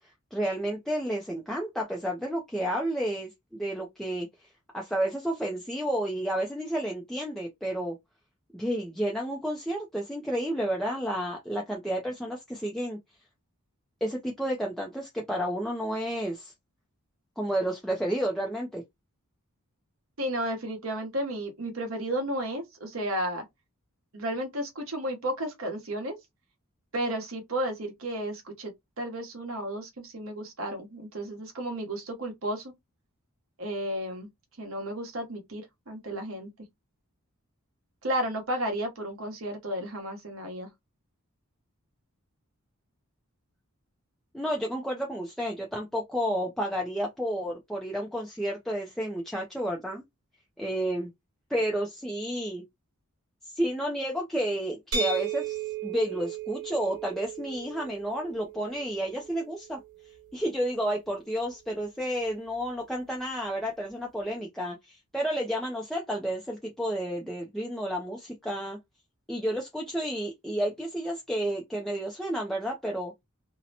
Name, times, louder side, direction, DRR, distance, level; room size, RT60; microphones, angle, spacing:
voice 1, 0.3-4.3 4.7-8.0 8.5-13.0 14.0-16.5 17.4-18.8 44.3-50.0 50.6-51.1 51.5-52.6 53.4-59.8 60.3-68.8 69.3-73.1, equal, ahead, 0.3 m, -31 dB
voice 2, 20.2-23.4 24.1-26.2 26.9-32.7 33.6-34.3 34.6-36.5 38.0-40.7, right 1 dB, 60° right, 0.9 m, -33 dB
sound 1, 54.9-60.7, right 6 dB, 90° right, 1.1 m, -36 dB
2.7 x 2.0 x 2.7 m
head